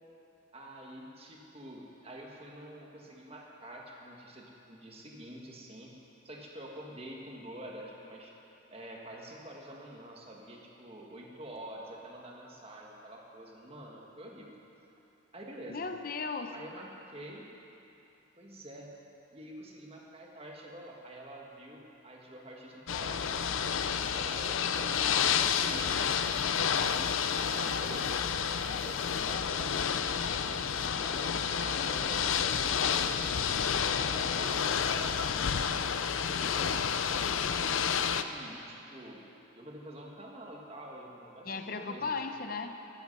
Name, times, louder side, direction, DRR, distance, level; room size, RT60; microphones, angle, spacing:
voice 1, 0.5-5.9 6.2-8.3 8.7-14.5 15.3-15.8 16.5-17.4 18.4-18.9 19.3-25.1 25.6-33.3 33.9-36.2 36.5-39.2 39.5-42.1 42.4-42.5, right 1 dB, 30° right, -1 dB, 1.6 m, -47 dB
voice 2, 15.7-16.6 41.4-42.9, left 4 dB, 45° left, 7 dB, 0.7 m, -37 dB
Ocean / Boat Water vehicle, 22.9-38.2, left 7 dB, 80° left, 0.5 m, -30 dB
14.0 x 13.0 x 5.5 m, 2.8 s
head